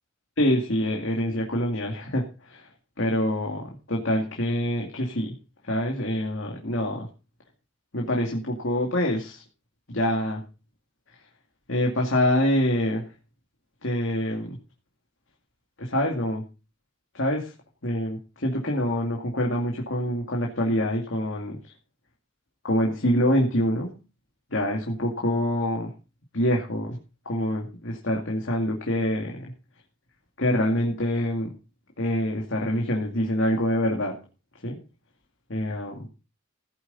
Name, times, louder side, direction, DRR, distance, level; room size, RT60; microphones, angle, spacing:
voice 1, 0.4-2.7 3.0-5.3 5.6-7.1 7.9-9.4 9.9-10.4 11.7-13.1 13.8-14.6 15.8-16.4 17.1-17.5 17.8-21.6 22.6-23.9 24.5-25.9 26.3-27.0 27.3-29.5 30.4-31.5 32.0-34.2 34.6-34.8 35.5-36.1, equal, 70° left, 0 dB, 2.4 m, -25 dB
16.0 x 9.6 x 4.1 m, 0.32 s
head